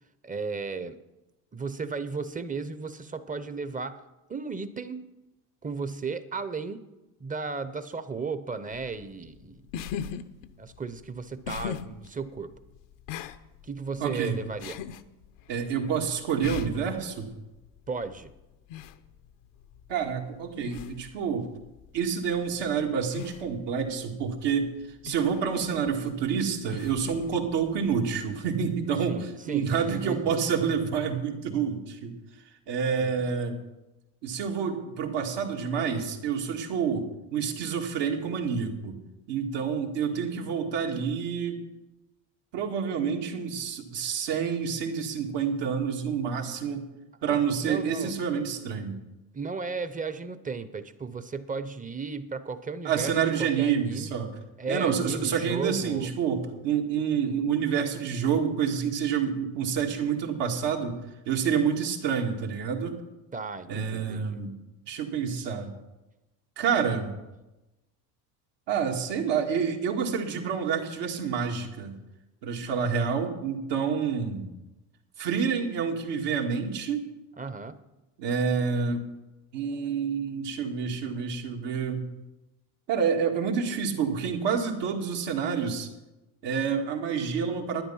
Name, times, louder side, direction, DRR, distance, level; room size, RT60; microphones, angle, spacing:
voice 1, 0.2-1.0 1.5-4.0 4.3-5.1 5.6-6.8 7.2-9.6 10.6-12.5 13.6-14.8 17.9-18.3 29.1-30.3 33.0-33.3 47.3-48.1 49.3-53.1 53.4-54.1 54.6-56.1 63.3-64.4 77.4-77.8, right 4 dB, 20° right, 13 dB, 0.9 m, -35 dB
sound 1, 8.7-28.4, left 8 dB, 70° left, 0.9 m, -42 dB
voice 2, 14.0-14.4 15.5-17.3 19.9-21.5 21.9-24.7 25.0-29.2 29.5-32.1 32.7-33.6 34.2-39.0 39.3-41.6 42.5-46.8 47.2-49.0 52.8-54.3 54.7-61.0 61.3-63.0 63.7-64.5 64.9-65.7 66.6-67.1 68.7-71.9 72.4-74.5 75.2-77.1 78.2-79.0 79.5-82.1 82.9-85.9 86.4-87.8, right 6 dB, 70° right, 2 dB, 2.1 m, -28 dB
11.5 x 9.9 x 5.7 m, 1.0 s
supercardioid pair, 90°, 44 cm